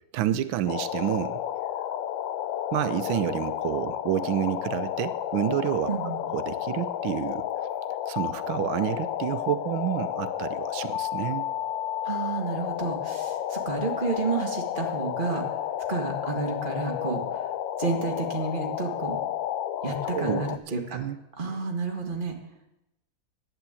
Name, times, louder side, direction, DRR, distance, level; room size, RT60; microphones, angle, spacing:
voice 1, 0.1-1.4 2.7-5.9 6.3-7.5 8.1-11.4 20.1-20.5 20.9-21.2, right 12 dB, 90° right, 13 dB, 1.5 m, -29 dB
sound 1, 0.7-20.6, left 11 dB, 80° left, 1.4 m, -31 dB
voice 2, 5.9-6.2 12.0-15.5 15.9-17.5 17.8-19.2 19.8-21.0 21.4-22.4, right 4 dB, 25° right, 2 dB, 1.9 m, -30 dB
11.0 x 9.3 x 8.3 m, 0.86 s
omnidirectional pair, 2.1 m